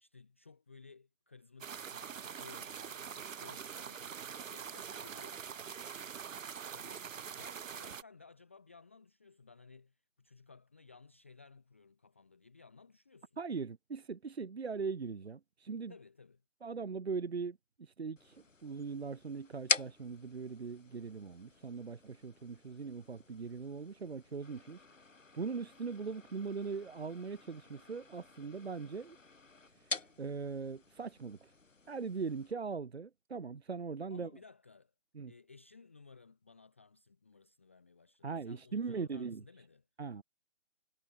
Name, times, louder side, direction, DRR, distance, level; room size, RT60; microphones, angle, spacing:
voice 1, 0.0-5.4 6.7-7.1 7.3-13.4 15.9-16.4 34.1-34.9 35.3-39.8, left 4 dB, 10° left, 0.7 m, -58 dB
sound 1, 1.6-8.0, right 7 dB, 80° right, 0.5 m, -44 dB
voice 2, 13.4-15.9 16.6-24.8 25.3-29.2 29.8-31.5 31.9-34.3 35.1-35.3 38.2-39.4 40.0-40.2, right 5 dB, 55° right, 1.7 m, -40 dB
sound 2, 18.2-32.5, left 3 dB, 75° left, 1.9 m, -44 dB
figure-of-eight pair, 150°, 39 cm